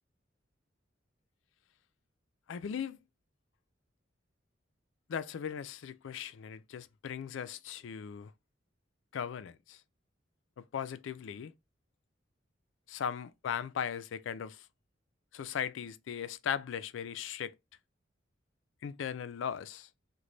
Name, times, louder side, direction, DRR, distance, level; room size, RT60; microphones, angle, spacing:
voice 1, 2.5-3.0 5.1-8.3 9.1-9.8 10.7-11.5 12.9-14.6 15.3-17.5 18.8-19.9, left 8 dB, 75° left, 0.4 m, -38 dB
3.1 x 2.2 x 3.7 m
head